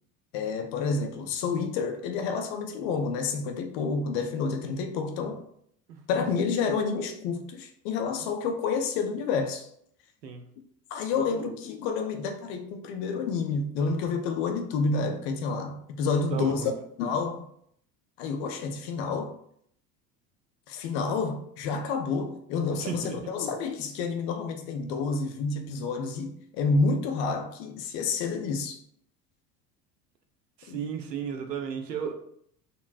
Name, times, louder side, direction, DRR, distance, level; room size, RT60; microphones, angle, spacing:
voice 1, 0.3-5.4 6.1-9.7 10.9-16.7 17.0-17.5 18.2-19.4 20.7-28.8 30.7-30.8, left 4 dB, 40° left, 0.5 m, -29 dB
voice 2, 16.3-16.7 22.8-23.3 30.6-32.1, right 6 dB, 80° right, 0.6 m, -34 dB
3.7 x 2.0 x 2.5 m
figure-of-eight pair, 70°, 49 cm